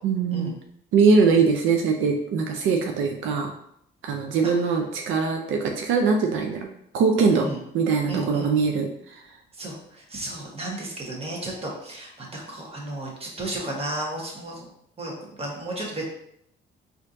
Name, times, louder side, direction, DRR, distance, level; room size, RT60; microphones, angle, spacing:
voice 1, 0.0-0.5 0.9-3.5 4.0-6.7 6.9-7.5 7.7-9.2, right 5 dB, 85° right, 3 dB, 0.5 m, -22 dB
voice 2, 8.1-8.5 9.6-14.6 15.0-16.0, right 1 dB, 30° right, -2 dB, 1.2 m, -33 dB
4.2 x 2.6 x 2.6 m, 0.71 s
cardioid pair, 90°, 20 cm